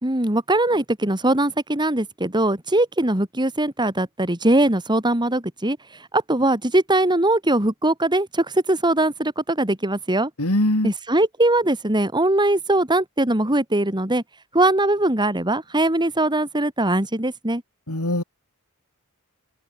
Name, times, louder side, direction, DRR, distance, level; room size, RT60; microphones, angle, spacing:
voice 1, 0.0-5.8 6.1-10.3 10.8-14.2 14.5-17.6, right 1 dB, 20° right, 3.1 m, -21 dB
voice 2, 10.4-10.9 17.9-18.2, left 1 dB, 75° left, 4.1 m, -21 dB
head